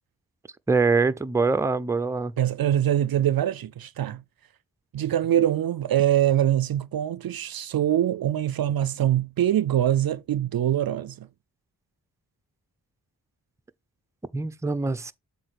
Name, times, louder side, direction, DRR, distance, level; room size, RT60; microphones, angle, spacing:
voice 1, 0.7-2.3 14.3-15.1, right 4 dB, 5° right, 0.5 m, -23 dB
voice 2, 2.4-4.2 4.9-11.3, right 11 dB, 60° right, 0.5 m, -23 dB
7.8 x 2.7 x 5.9 m
cardioid pair, 45°, 41 cm